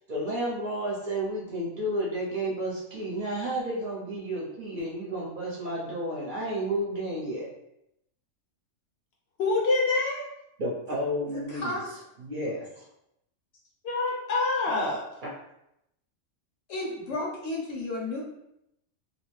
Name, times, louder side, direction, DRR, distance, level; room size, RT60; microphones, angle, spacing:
voice 1, 0.1-7.5 10.6-11.7 12.2-12.8 15.2-15.3, right 1 dB, 50° right, -5 dB, 0.7 m, -31 dB
voice 2, 9.4-10.3 13.8-15.0, left 3 dB, 60° left, -2 dB, 0.8 m, -26 dB
voice 3, 11.3-12.0 16.7-18.2, left 2 dB, 80° left, -2 dB, 1.2 m, -33 dB
2.8 x 2.1 x 3.1 m, 0.82 s
omnidirectional pair, 1.3 m